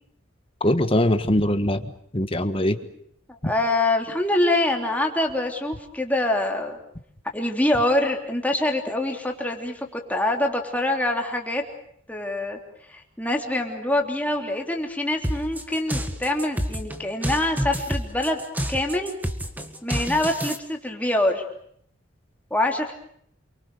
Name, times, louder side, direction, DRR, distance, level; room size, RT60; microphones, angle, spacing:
voice 1, 0.6-1.8 2.1-2.8, left 1 dB, 30° left, 10 dB, 1.5 m, -21 dB
voice 2, 3.4-6.8 7.3-11.6 12.1-12.6 12.9-18.4 18.7-19.1 19.8-21.4 22.5-22.9, left 1 dB, 10° left, 2 dB, 3.4 m, -25 dB
sound 1, 15.2-20.6, equal, 10° right, 1.7 m, -29 dB
28.5 x 24.0 x 6.9 m, 0.67 s
head